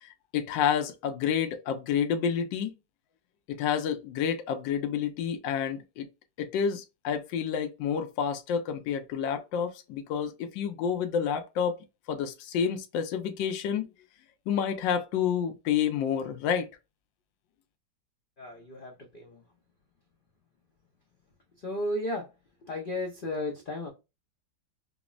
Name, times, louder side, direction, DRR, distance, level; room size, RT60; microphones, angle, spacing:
voice 1, 0.0-2.7 3.5-6.1 6.4-11.8 12.1-13.9 14.5-16.7, left 8 dB, 80° left, 1.3 m, -29 dB
voice 2, 18.4-19.4 21.6-22.3 22.6-23.9, left 1 dB, 60° left, 0.5 m, -34 dB
5.0 x 2.0 x 2.3 m
omnidirectional pair, 2.1 m